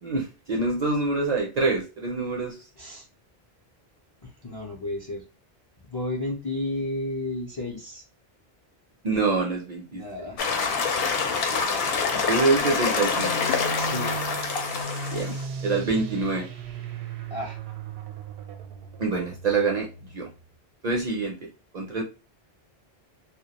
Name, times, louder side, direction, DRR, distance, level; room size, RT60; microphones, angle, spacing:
voice 1, 0.0-2.6 9.0-10.2 12.1-13.5 15.1-15.4 15.6-16.5 19.0-20.3 20.8-21.5 21.7-22.0, right 3 dB, 55° right, 0 dB, 0.5 m, -26 dB
voice 2, 4.4-5.2 5.9-8.0 9.9-10.4 13.8-14.2 17.3-17.6, left 2 dB, 35° left, -2 dB, 0.4 m, -32 dB
sound 1, 10.4-15.4, left 5 dB, 70° left, 0.7 m, -26 dB
sound 2, 13.2-20.4, right 4 dB, 80° right, 0.8 m, -36 dB
2.2 x 2.1 x 2.8 m, 0.30 s
omnidirectional pair, 1.1 m